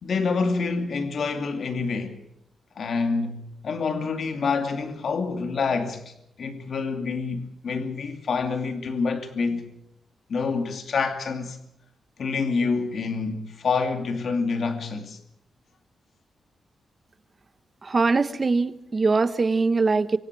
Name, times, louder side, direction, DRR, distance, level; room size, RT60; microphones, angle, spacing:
voice 1, 0.0-2.2 2.8-6.1 6.4-9.7 10.3-11.6 12.2-15.2, left 4 dB, 50° left, 2.6 m, -27 dB
voice 2, 17.8-20.2, right 4 dB, 25° right, 1.1 m, -22 dB
26.5 x 24.5 x 4.8 m
wide cardioid pair, 175°, 0 cm